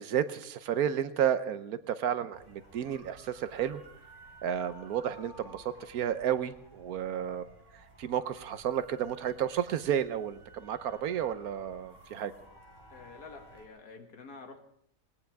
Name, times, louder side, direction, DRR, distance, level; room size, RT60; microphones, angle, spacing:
voice 1, 0.0-3.8 4.4-7.5 8.0-12.3, right 9 dB, 75° right, 13 dB, 1.3 m, -32 dB
sound 1, 2.3-13.7, right 2 dB, 35° right, 3.3 m, -55 dB
voice 2, 12.9-14.6, left 4 dB, 80° left, 5 dB, 2.1 m, -48 dB
19.0 x 19.0 x 3.5 m, 0.72 s
omnidirectional pair, 1.6 m